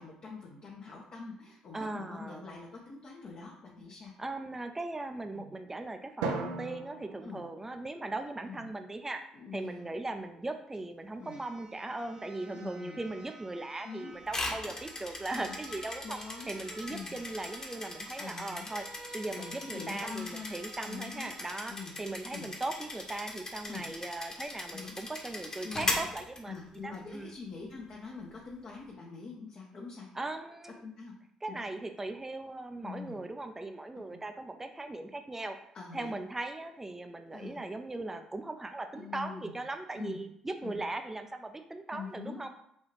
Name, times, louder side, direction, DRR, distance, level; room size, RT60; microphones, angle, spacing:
voice 1, 0.0-4.1 5.3-5.5 7.2-7.4 8.4-8.7 9.3-9.8 11.2-11.4 12.5-13.0 13.8-14.1 15.3-15.6 16.0-16.6 16.9-17.1 18.2-18.7 19.4-20.5 20.8-21.3 21.7-21.9 22.3-22.5 23.7-23.9 24.7-24.9 25.6-26.0 26.5-30.1 30.8-31.1 31.5-31.6 32.8-33.2 34.1-34.2 35.7-36.2 37.3-37.6 39.0-39.6 39.9-40.2 40.6-40.8 41.9-42.4, left 5 dB, 50° left, -2 dB, 0.7 m, -44 dB
voice 2, 1.7-2.4 4.2-9.2 9.5-16.2 16.5-18.8 19.1-26.6 26.8-27.3 30.1-30.8 31.4-35.6 35.9-42.5, right 2 dB, 15° right, 6 dB, 0.4 m, -39 dB
Drum, 6.2-8.5, right 3 dB, 85° right, 0.4 m, -38 dB
sound 1, 10.7-10.8 11.2-21.6 22.1-22.2, right 2 dB, 50° right, 1.2 m, -52 dB
sound 2, 14.3-26.9, left 2 dB, 30° left, 1.0 m, -39 dB
4.1 x 2.4 x 3.2 m, 0.72 s
supercardioid pair, 60°, 2 cm